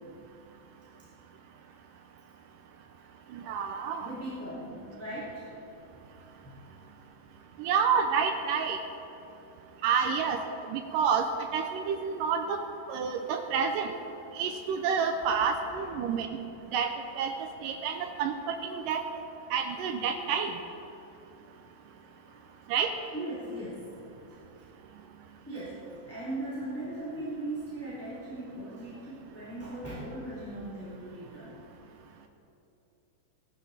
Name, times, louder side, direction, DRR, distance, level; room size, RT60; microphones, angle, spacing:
voice 1, 3.3-4.1 7.6-8.8 9.8-10.4 10.7-11.3 11.5-12.6 12.9-13.9 14.4-16.3 16.7-16.9 17.2-19.0 19.5-20.6 22.7-22.9, right 6 dB, 85° right, 5 dB, 1.9 m, -29 dB
voice 2, 4.0-5.5 6.4-7.0 15.7-16.1 22.2-22.5 23.1-24.7 25.4-31.6, right 1 dB, 5° left, -11 dB, 2.4 m, -39 dB
19.0 x 12.5 x 4.2 m, 3.0 s
omnidirectional pair, 4.6 m